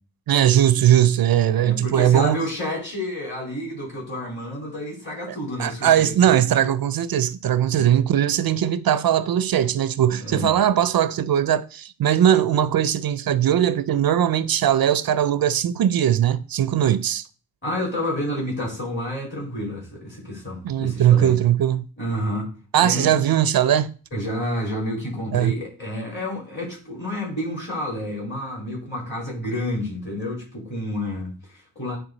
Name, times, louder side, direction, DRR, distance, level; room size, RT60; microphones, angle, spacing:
voice 1, 0.3-2.4 5.3-17.2 20.6-21.8 22.7-23.9 25.3-25.5, right 10 dB, 70° right, 0.5 m, -20 dB
voice 2, 1.6-6.4 7.7-7.9 10.2-10.5 17.6-21.3 22.0-22.5 22.8-23.2 24.1-32.0, left 1 dB, 30° left, 4.1 m, -29 dB
8.8 x 3.5 x 4.0 m
wide cardioid pair, 90°, 38 cm